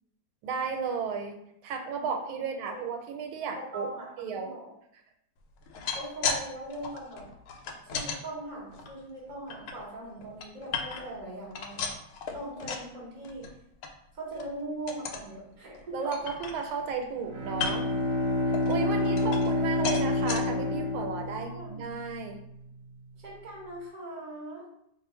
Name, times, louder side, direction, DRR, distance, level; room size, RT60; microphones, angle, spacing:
voice 1, 0.4-1.4 1.6-3.9 4.2-4.5 15.9-17.8 18.7-22.4, right 5 dB, 85° right, 4 dB, 1.4 m, -34 dB
voice 2, 3.6-4.7 5.9-7.3 7.9-11.9 12.3-13.5 14.2-16.1 18.8-19.4 21.3-21.8 23.2-24.6, right 1 dB, 30° right, -4 dB, 0.8 m, -40 dB
sound 1, 5.6-6.4 6.7-8.2 8.7-9.7 10.2-11.2 11.5-12.9 13.2-13.5 13.8-13.9 14.3-14.5 14.9-15.3 15.7-15.8 16.1-16.9 17.5-18.0 18.5-19.6 19.8-20.4 21.0-21.1 21.4-21.5, left 5 dB, 85° left, 1.4 m, -35 dB
Bowed string instrument, 17.2-21.9, left 2 dB, 65° right, 1.2 m, -28 dB
3.1 x 2.4 x 4.2 m, 0.75 s
omnidirectional pair, 2.2 m